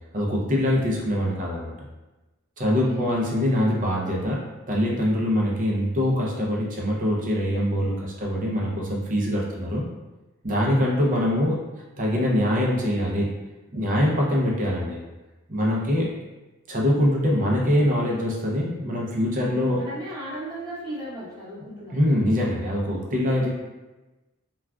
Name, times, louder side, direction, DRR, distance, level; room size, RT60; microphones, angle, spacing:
voice 1, 0.1-1.7 2.6-4.4 4.7-9.8 10.4-11.6 12.0-13.3 13.7-15.0 15.5-16.1 16.7-19.8 21.9-23.5, equal, 40° right, -2 dB, 0.6 m, -23 dB
voice 2, 2.6-3.1 19.4-21.9, right 1 dB, 20° right, -9 dB, 1.0 m, -36 dB
3.5 x 2.4 x 2.3 m, 1.1 s
head